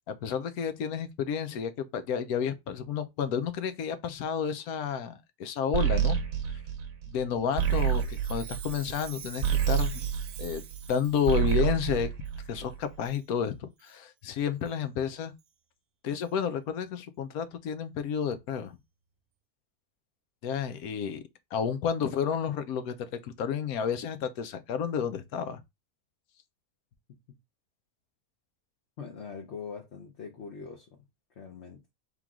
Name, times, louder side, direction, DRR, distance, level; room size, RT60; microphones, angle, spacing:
voice 1, 0.1-6.2 7.1-10.0 10.4-10.6 10.9-12.1 12.5-15.3 16.0-18.8 20.4-21.2 21.5-25.6, left 7 dB, 75° left, 1.2 m, -31 dB
sound 1, 5.7-10.9 11.2-12.9, right 9 dB, 65° right, 1.3 m, -28 dB
Chime, 7.5-11.6 12.3-12.4 13.0-13.2 13.8-14.0 14.6-14.7 15.4-15.5 16.2-16.3, right 9 dB, 80° right, 0.5 m, -47 dB
voice 2, 29.0-30.9 31.4-31.8, left 5 dB, 55° left, 1.0 m, -42 dB
3.8 x 3.0 x 3.6 m
omnidirectional pair, 1.6 m